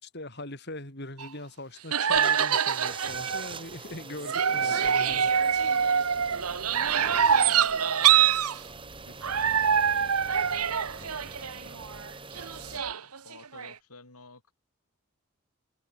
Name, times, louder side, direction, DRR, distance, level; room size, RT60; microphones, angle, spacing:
voice 1, 0.0-5.3, left 1 dB, 50° left, 5.1 m, -41 dB
sound 1, 1.2-1.3 1.9-3.6 4.2-8.6 9.2-12.1 12.4-13.7, right 8 dB, 85° right, 1.3 m, -25 dB
sound 2, 2.1-12.8, right 4 dB, 20° right, 5.1 m, -43 dB
sound 3, 4.9-12.9, right 1 dB, 50° right, 6.4 m, -51 dB
voice 2, 6.8-8.5 9.0-11.8 12.6-14.5, left 3 dB, 90° left, 7.0 m, -52 dB
open air
head